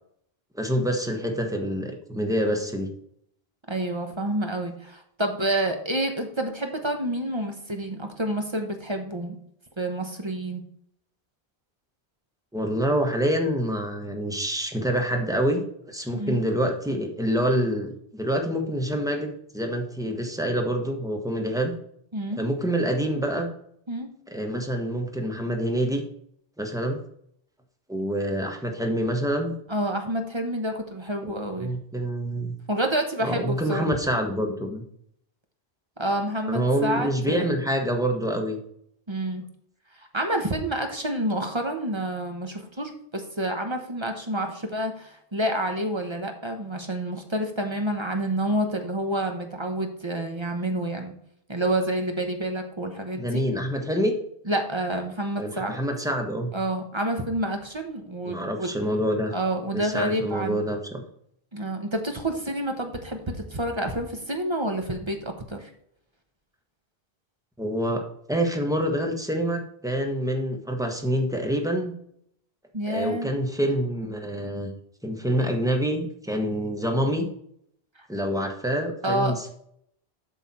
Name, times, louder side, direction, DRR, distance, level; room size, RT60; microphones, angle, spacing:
voice 1, 0.5-2.9 12.5-15.6 15.9-21.7 22.4-23.5 24.3-26.0 26.6-27.0 27.9-29.5 31.2-32.5 33.2-34.8 36.5-38.6 53.2-54.1 55.4-56.5 58.3-59.3 59.7-61.0 67.6-71.9 72.9-74.7 75.0-77.3 78.1-79.5, equal, 5° right, 3 dB, 1.2 m, -26 dB
voice 2, 3.7-9.4 9.8-10.6 16.1-16.4 22.1-22.4 23.9-24.1 29.7-31.7 32.7-33.9 36.0-37.5 39.1-39.4 40.1-51.1 51.5-53.4 54.5-55.8 56.5-58.7 59.3-60.6 61.5-65.7 72.7-73.3 79.0-79.3, right 1 dB, 30° right, 5 dB, 1.1 m, -28 dB
8.1 x 6.1 x 4.2 m, 0.69 s
omnidirectional pair, 1.0 m